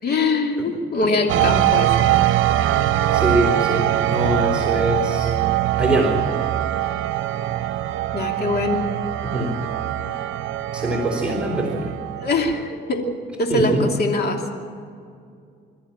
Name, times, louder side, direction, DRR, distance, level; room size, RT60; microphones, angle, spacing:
voice 1, 0.0-2.1 8.1-8.8 12.2-13.1 13.4-14.4, left 2 dB, 55° left, 2 dB, 2.8 m, -22 dB
sound 1, 1.3-12.5, right 13 dB, 80° right, 0.8 m, -22 dB
voice 2, 3.1-3.8 4.1-5.3 5.8-6.2 9.2-9.5 10.7-11.9 13.5-13.8, right 1 dB, 5° right, -2 dB, 4.4 m, -23 dB
23.0 x 14.0 x 8.8 m, 2.3 s
cardioid pair, 90°, 20 cm